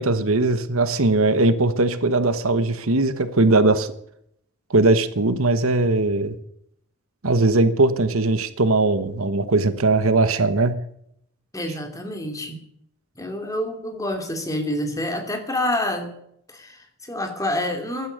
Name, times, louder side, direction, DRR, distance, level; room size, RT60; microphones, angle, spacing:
voice 1, 0.0-3.9 4.7-6.3 7.2-10.8, right 2 dB, 65° right, 11 dB, 1.2 m, -19 dB
voice 2, 11.5-12.6 13.2-16.1 16.5-18.1, left 1 dB, 15° left, 4 dB, 2.7 m, -27 dB
16.0 x 12.5 x 6.6 m, 0.72 s
head